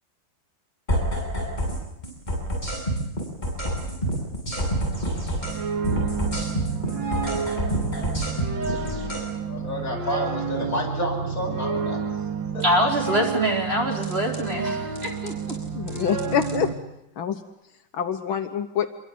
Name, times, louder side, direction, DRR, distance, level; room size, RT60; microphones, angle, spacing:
sound 1, 0.9-1.8 2.0-5.6 5.8-9.2 14.0-14.4 15.0-15.5 15.9-16.5, right 1 dB, 20° left, 8.1 m, -27 dB
sound 2, 5.0-16.7, right 5 dB, 65° right, 2.8 m, -30 dB
voice 1, 9.5-12.3 12.5-12.6 13.1-13.2, equal, 40° left, 0 dB, 8.4 m, -30 dB
voice 2, 12.6-15.6, equal, 30° right, 2 dB, 4.4 m, -24 dB
voice 3, 15.7-16.7 17.2-17.4 17.9-18.9, left 8 dB, 75° left, 8 dB, 1.9 m, -26 dB
27.0 x 23.5 x 8.6 m, 0.88 s
omnidirectional pair, 2.2 m